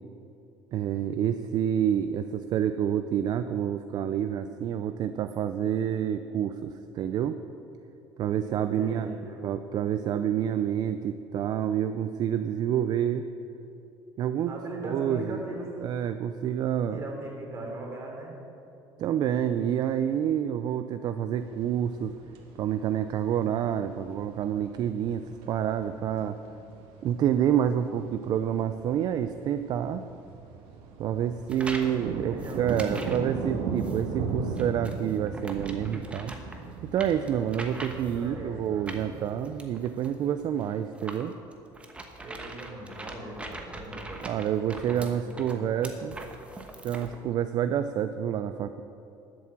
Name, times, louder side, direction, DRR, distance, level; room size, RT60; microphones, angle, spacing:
voice 1, 0.7-7.4 8.2-9.1 9.4-13.3 14.2-14.5 14.8-15.4 15.8-17.0 19.0-22.1 22.6-26.4 27.0-30.0 31.0-36.4 36.9-41.3 44.2-46.2 46.8-48.8, right 9 dB, 50° right, 9 dB, 0.4 m, -28 dB
voice 2, 8.6-9.5 14.4-15.7 16.9-18.3 31.0-33.3 38.1-39.0 42.2-46.1, right 1 dB, 30° right, -1 dB, 3.3 m, -41 dB
sound 1, 21.4-39.6, right 5 dB, 75° right, 1.6 m, -38 dB
sound 2, 31.5-32.0 32.4-33.3 33.8-34.0 34.6-38.3 38.9-47.2, right 2 dB, 15° right, 1.1 m, -42 dB
12.0 x 7.7 x 7.4 m, 2.9 s
cardioid pair, 130°, 9 cm